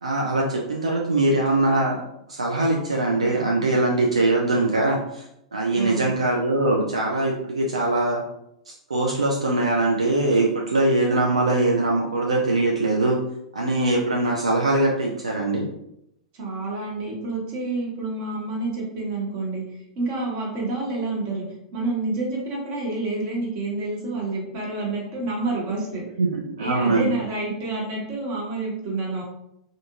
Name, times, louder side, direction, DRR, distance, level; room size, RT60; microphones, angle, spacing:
voice 1, 0.0-2.0 2.3-5.2 5.5-8.2 8.7-13.2 13.5-15.7 26.2-27.1, right 2 dB, 80° right, -1 dB, 0.4 m, -22 dB
voice 2, 5.7-6.1 16.3-21.4 21.7-26.0 26.6-29.2, right 2 dB, 45° right, -2 dB, 1.0 m, -28 dB
2.6 x 2.5 x 2.4 m, 0.80 s
figure-of-eight pair, 95°, 3 cm